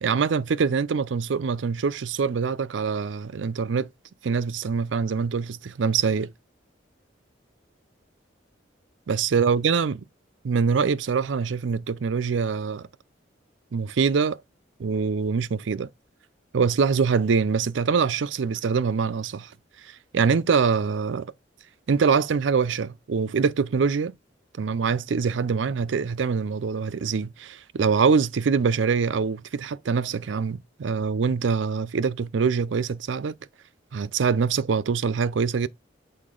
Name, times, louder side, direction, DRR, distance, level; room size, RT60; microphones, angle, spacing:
voice 1, 0.0-3.9 4.2-6.3 9.1-10.0 10.4-12.9 13.7-14.4 14.8-15.9 16.5-19.5 19.8-21.3 21.9-24.1 24.6-33.4 33.9-35.7, right 5 dB, 75° right, 0.4 m, -24 dB
6.6 x 4.3 x 3.7 m
head